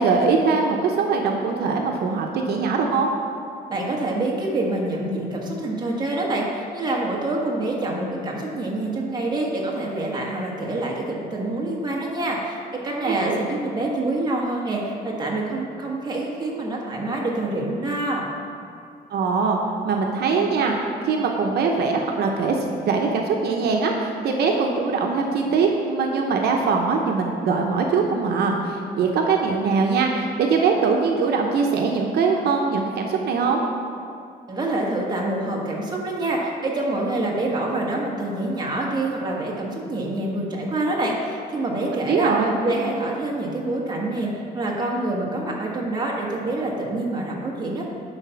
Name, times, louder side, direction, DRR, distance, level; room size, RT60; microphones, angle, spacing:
voice 1, 0.0-3.1 13.0-13.4 19.1-19.6 19.8-20.7 21.0-33.6 42.1-42.5, right 4 dB, 75° right, 1 dB, 0.8 m, -22 dB
voice 2, 3.7-18.3 34.5-42.3 42.6-47.8, right 2 dB, 25° right, -2 dB, 1.4 m, -26 dB
9.9 x 4.1 x 5.7 m, 2.4 s
cardioid pair, 135°, 17 cm